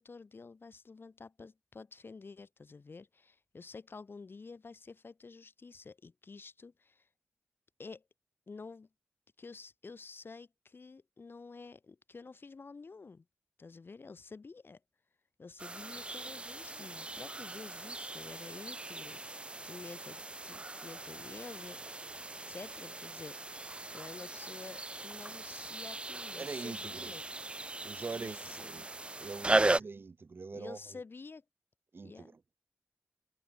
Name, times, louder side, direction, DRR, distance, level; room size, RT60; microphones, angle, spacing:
voice 1, 0.0-7.1 7.8-8.0 8.5-8.9 9.4-13.2 13.6-14.8 15.4-22.1 22.5-27.2 28.1-28.9 29.4-29.8 30.5-31.4 32.0-32.3, left 4 dB, 55° left, 1.8 m, -50 dB
sound 1, 15.6-29.8, right 2 dB, 25° right, 0.4 m, -37 dB
voice 2, 26.4-27.2 27.8-28.8 29.2-31.0 31.9-32.3, right 4 dB, 55° right, 1.5 m, -43 dB
wide cardioid pair, 70°, 5 cm